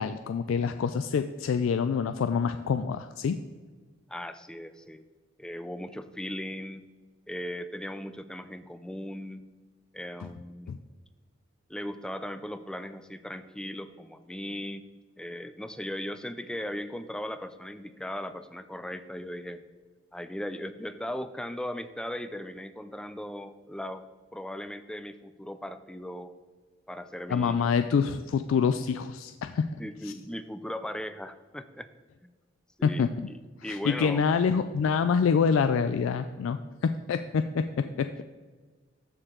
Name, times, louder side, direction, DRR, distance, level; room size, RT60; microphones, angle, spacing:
voice 1, 0.0-3.4 10.2-10.3 10.7-10.8 27.3-29.7 30.0-30.1 32.8-33.3 33.6-38.2, left 6 dB, 85° left, 10 dB, 0.3 m, -26 dB
voice 2, 4.1-5.0 5.4-6.8 7.3-9.4 9.9-10.8 11.7-14.8 15.2-19.6 20.1-24.0 24.3-26.3 26.9-27.7 29.8-31.9 32.2-32.3 32.8-34.2, left 1 dB, 5° left, 11 dB, 0.3 m, -38 dB
13.0 x 4.6 x 3.7 m, 1.4 s
head